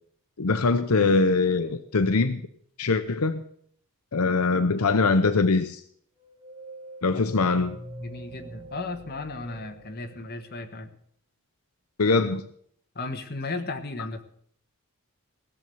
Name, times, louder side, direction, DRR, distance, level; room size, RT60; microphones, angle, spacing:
voice 1, 0.4-2.4 2.8-3.4 4.1-5.8 7.0-7.8 12.0-12.4, left 3 dB, 80° left, 0.8 m, -22 dB
sound 1, 6.2-10.8, right 1 dB, 20° right, 1.9 m, -44 dB
voice 2, 8.0-10.9 12.9-14.2, left 2 dB, 45° left, 1.4 m, -35 dB
17.0 x 7.0 x 7.7 m
head